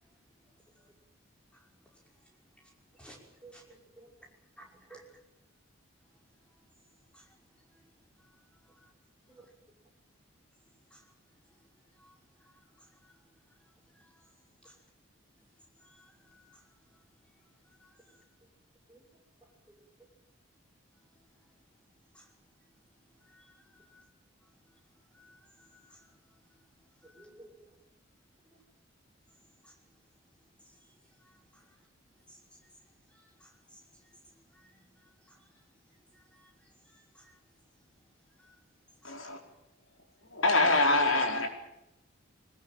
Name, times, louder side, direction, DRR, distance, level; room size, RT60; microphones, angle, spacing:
voice 1, 2.6-3.2 3.5-3.6 4.6-5.0 7.1-7.4 7.7-7.8 8.2-8.3 8.7-8.9 10.9-11.1 12.0-13.2 13.9-14.3 14.6-14.8 15.8-17.0 17.7-18.2 22.1-22.3 23.2-24.0 25.1-26.2 27.0-27.3 29.6-29.7 30.6-30.9 31.2-31.9 32.3-32.4 33.1-34.0 34.5-35.6 36.1-37.4 38.4-38.6 39.0-39.2, equal, 5° left, 0 dB, 5.5 m, -61 dB
voice 2, 3.1-4.1 4.6-5.0 9.3-9.5 18.9-19.0 19.4-19.9 27.0-27.8 28.4-28.6 40.4-40.5, right 3 dB, 10° right, 0 dB, 6.0 m, -56 dB
voice 3, 39.0-39.4 40.2-41.5, left 2 dB, 80° left, 4 dB, 4.9 m, -25 dB
23.0 x 19.5 x 9.1 m, 0.84 s
head